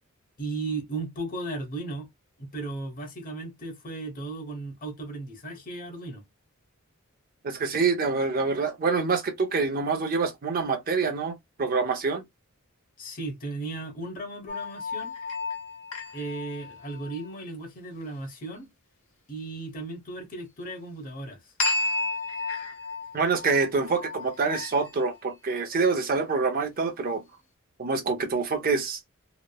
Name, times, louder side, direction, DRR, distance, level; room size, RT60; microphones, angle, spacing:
voice 1, 0.4-2.1 2.4-6.2 13.0-15.1 16.1-18.7 19.3-21.4, right 2 dB, 40° left, 0.9 m, -36 dB
voice 2, 7.4-11.3 11.6-12.2 23.1-27.2 27.8-29.0, right 4 dB, 40° right, 0.6 m, -26 dB
sound 1, 14.5-17.3 21.6-25.2, left 3 dB, 70° left, 1.2 m, -33 dB
3.0 x 2.0 x 2.2 m
head